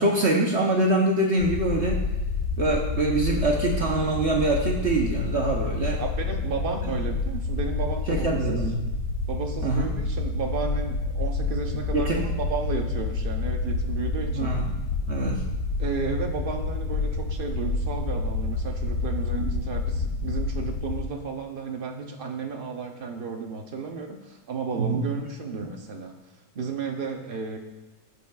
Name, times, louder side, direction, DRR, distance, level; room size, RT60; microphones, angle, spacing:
voice 1, 0.0-2.0 2.6-6.0 8.1-8.8 9.6-9.9 11.9-12.2 14.3-14.7 15.1-15.4 19.4-19.6 24.8-25.0 25.6-25.7, right 2 dB, 50° right, 0 dB, 0.9 m, -24 dB
sound 1, 1.4-21.0, left 3 dB, 60° left, 1.0 m, -28 dB
voice 2, 6.0-8.6 9.3-14.5 15.8-26.1 26.5-27.6, right 5 dB, 70° right, 3 dB, 0.5 m, -33 dB
13.5 x 8.1 x 2.3 m, 1.1 s
omnidirectional pair, 2.0 m